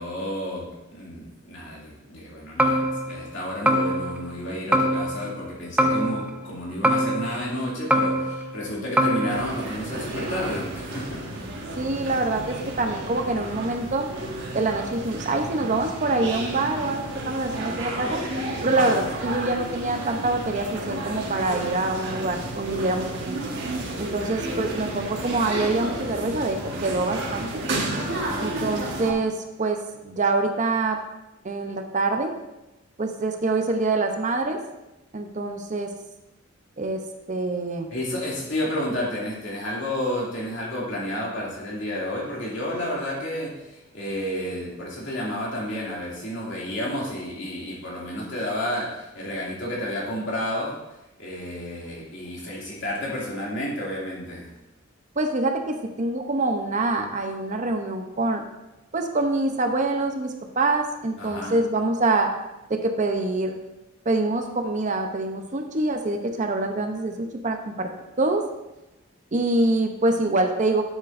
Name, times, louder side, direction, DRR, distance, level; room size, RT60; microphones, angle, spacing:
voice 1, 0.0-11.2 28.1-28.5 37.9-50.8 51.2-54.5 61.2-61.6, left 1 dB, 65° left, -5 dB, 2.6 m, -31 dB
sound 1, 2.6-3.3 3.7-4.4 4.7-5.5 5.8-6.5 6.8-7.6 7.9-8.6 9.0-9.4, equal, 5° right, 0.4 m, -23 dB
sound 2, 9.3-29.1, right 1 dB, 60° right, 1.5 m, -32 dB
voice 2, 11.8-14.1 14.5-18.2 18.6-23.5 24.0-27.6 28.4-31.0 31.4-32.3 33.0-34.6 35.1-35.9 36.8-37.0 37.3-37.9 55.2-58.4 58.9-62.3 62.7-63.6 64.0-67.9 68.2-68.4 69.3-70.8, right 2 dB, 40° right, 4 dB, 0.7 m, -25 dB
10.5 x 7.4 x 2.6 m, 0.97 s
head